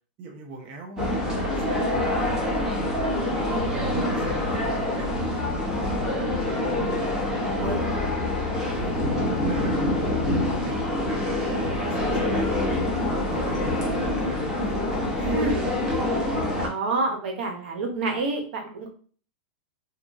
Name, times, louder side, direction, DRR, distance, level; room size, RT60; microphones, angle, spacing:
voice 1, 0.2-2.9 3.3-6.1 6.4-8.2 8.5-12.3 12.8-15.7, right 3 dB, 40° right, 2 dB, 0.6 m, -41 dB
sound 1, 1.0-16.7, left 1 dB, 10° right, 0.9 m, -26 dB
voice 2, 2.2-2.5 15.3-15.7 16.6-18.9, right 3 dB, 80° right, 3 dB, 0.8 m, -28 dB
2.9 x 2.3 x 2.5 m, 0.42 s
supercardioid pair, 135°, 6 cm